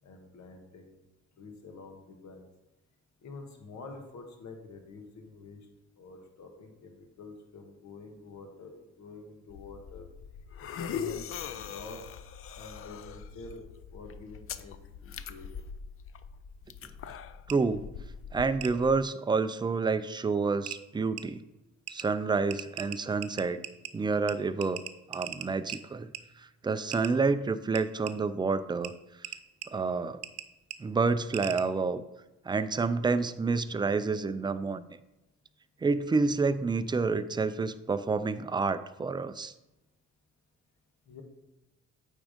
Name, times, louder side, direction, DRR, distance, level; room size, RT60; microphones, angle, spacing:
voice 1, 0.0-1.0 1.4-2.5 3.2-5.7 6.0-10.1 10.8-12.0 12.6-13.6 13.9-15.6 41.1-41.2, left 3 dB, 65° left, 4 dB, 1.5 m, -47 dB
sound 1, 9.5-19.0, left 7 dB, 45° left, 0.5 m, -42 dB
voice 2, 17.5-17.8 18.3-21.4 21.9-23.6 23.9-24.8 25.1-26.1 26.4-28.9 29.7-30.2 30.8-32.0 32.5-34.8 35.8-39.5, right 4 dB, 15° right, 12 dB, 0.4 m, -28 dB
sound 2, 17.5-17.6 18.6-18.7 20.1-20.2 20.7-20.8 21.2-21.3 21.9-22.1 22.5-23.9 24.3-24.4 24.6-25.8 26.1-26.2 26.9-27.1 27.7-28.1 28.8-28.9 29.2-29.7 30.2-30.5 30.7-30.8 31.3-31.6, right 10 dB, 55° right, 0.6 m, -38 dB
8.8 x 3.6 x 5.1 m, 0.99 s
cardioid pair, 90°, 30 cm